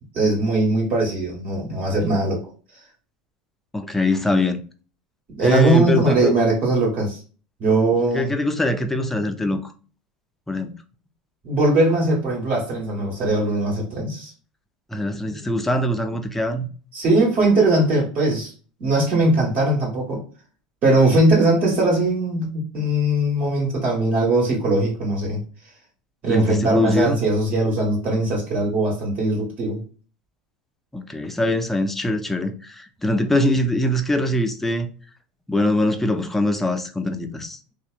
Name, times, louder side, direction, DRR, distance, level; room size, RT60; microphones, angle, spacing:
voice 1, 0.1-2.4 5.4-7.2 7.6-8.3 11.4-14.3 16.9-18.5 18.8-20.2 20.8-25.4 26.2-29.8, right 2 dB, 45° right, 1.5 m, -20 dB
voice 2, 3.7-4.6 5.4-6.3 8.1-9.7 10.5-10.7 14.9-16.7 26.3-27.2 30.9-34.9 35.5-37.6, left 1 dB, 5° left, 0.4 m, -22 dB
2.7 x 2.0 x 2.4 m
supercardioid pair, 110°, 4 cm